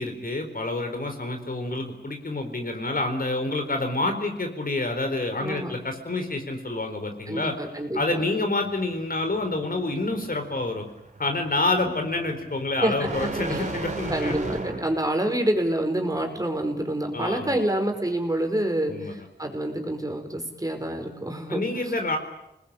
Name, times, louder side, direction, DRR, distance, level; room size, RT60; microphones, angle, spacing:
voice 1, 0.0-7.6 7.9-10.8 11.2-14.6 17.1-17.6 18.9-19.2 21.5-22.2, left 2 dB, 55° left, 5 dB, 4.4 m, -28 dB
voice 2, 5.4-5.7 7.3-8.3 11.7-11.9 12.8-13.6 14.1-21.6, right 1 dB, 20° right, 4 dB, 5.1 m, -27 dB
sound 1, 8.6-15.1, right 2 dB, 40° right, 3.9 m, -36 dB
29.5 x 20.5 x 8.9 m, 0.87 s
wide cardioid pair, 80°, 18 cm